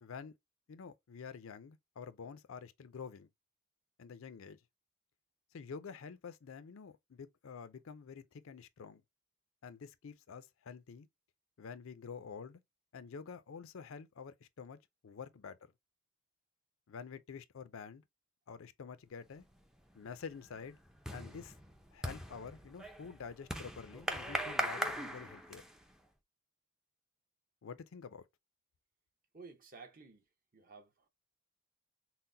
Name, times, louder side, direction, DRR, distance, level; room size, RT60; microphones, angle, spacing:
voice 1, 0.0-0.3 0.7-3.3 4.0-4.6 5.5-9.0 9.6-11.1 11.6-12.6 12.9-14.8 15.0-15.6 16.9-18.0 18.5-19.4 19.9-20.8 21.1-21.5 21.9-25.6 27.6-28.2, left 6 dB, 65° left, 0.4 m, -48 dB
sound 1, 19.4-19.8 20.1-25.9, equal, ahead, 0.4 m, -40 dB
voice 2, 29.3-30.2 30.5-31.1, right 4 dB, 40° right, 0.8 m, -54 dB
5.6 x 2.1 x 2.6 m
head